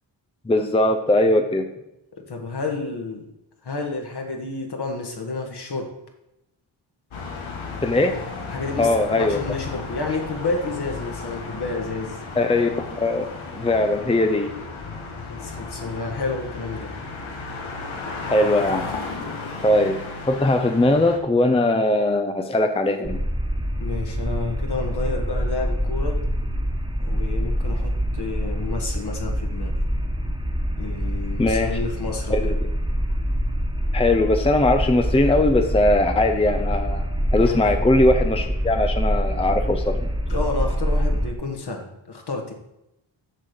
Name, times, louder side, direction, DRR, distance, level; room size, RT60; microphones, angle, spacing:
voice 1, 0.5-1.7 7.8-8.2 8.8-9.4 12.4-13.3 13.5-14.5 18.2-18.9 19.6-20.0 20.3-23.2 31.4-31.8 32.3-32.7 33.9-37.0 37.3-40.1, left 2 dB, 10° left, 6 dB, 0.6 m, -20 dB
voice 2, 2.3-3.3 3.6-5.9 8.5-12.2 15.3-16.9 23.8-26.2 27.0-29.7 30.8-32.5 37.4-37.6 40.3-42.5, left 3 dB, 55° left, 3 dB, 1.7 m, -30 dB
sound 1, 7.1-21.2, left 4 dB, 80° left, 1.6 m, -34 dB
sound 2, 23.0-41.3, equal, 10° right, 1.5 m, -25 dB
7.4 x 6.2 x 5.3 m, 0.88 s
cardioid pair, 75°, 47 cm